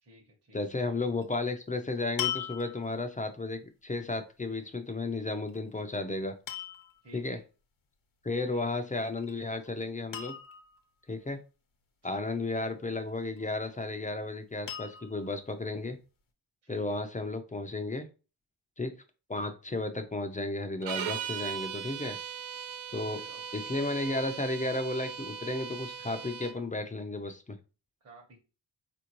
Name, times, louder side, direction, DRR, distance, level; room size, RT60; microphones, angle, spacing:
voice 1, 0.0-0.6 7.0-7.4 8.5-8.6 12.1-12.4 16.6-17.0 22.9-23.4 28.0-28.4, right 2 dB, 35° right, 0 dB, 0.9 m, -54 dB
voice 2, 0.5-6.3 7.1-7.4 8.2-10.3 11.1-11.4 12.0-16.0 16.7-18.1 18.8-18.9 19.3-22.2 22.9-23.2 23.5-27.6, left 2 dB, 20° left, 7 dB, 0.4 m, -33 dB
sound 1, 1.2-1.5 2.2-3.1 5.5-5.8 6.5-7.0 9.0-9.3 9.6-9.7 10.1-10.8 13.1-13.7 14.7-15.3 16.0-16.1, left 10 dB, 75° left, 0.9 m, -38 dB
sound 2, 20.8-26.6, right 8 dB, 90° right, 0.5 m, -39 dB
4.3 x 2.6 x 2.9 m, 0.33 s
wide cardioid pair, 100°, 45 cm